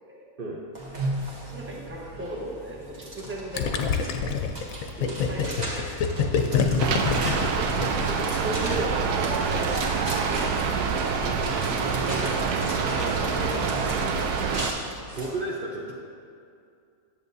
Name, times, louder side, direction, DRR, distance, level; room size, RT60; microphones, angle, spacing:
sound 1, 0.8-15.3, right 1 dB, 30° right, 1.2 m, -37 dB
voice 1, 1.4-4.1 5.3-5.9 8.1-9.8 10.3-11.6 12.0-14.9, right 1 dB, 10° right, -3 dB, 0.8 m, -36 dB
Gurgling, 3.6-8.2, left 6 dB, 70° left, 0.9 m, -25 dB
voice 2, 6.5-6.9 11.8-12.0 15.1-15.9, right 2 dB, 50° right, -3 dB, 0.7 m, -34 dB
Rain, 6.8-14.7, right 5 dB, 85° right, 1.1 m, -26 dB
9.9 x 7.2 x 2.7 m, 2.4 s
omnidirectional pair, 1.6 m